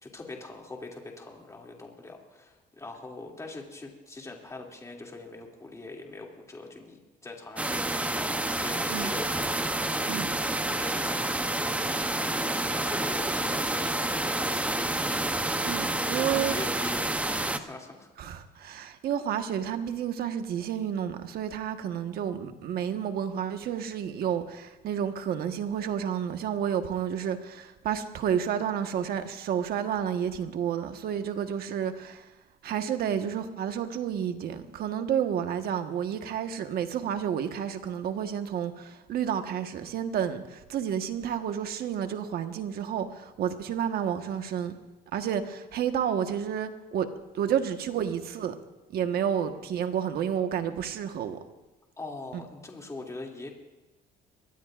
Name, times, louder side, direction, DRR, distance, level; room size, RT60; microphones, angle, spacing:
voice 1, 0.0-10.1 10.4-15.0 16.1-18.1 52.0-53.5, left 2 dB, 20° left, 2.6 m, -42 dB
sound 1, 7.6-17.6, right 1 dB, 10° right, 0.8 m, -29 dB
voice 2, 15.6-16.7 18.2-32.3 32.6-44.8 45.1-47.1 47.3-48.5 48.9-51.4 52.3-52.4, right 9 dB, 65° right, 1.4 m, -30 dB
23.0 x 18.0 x 2.5 m
cardioid pair, 110°, 17 cm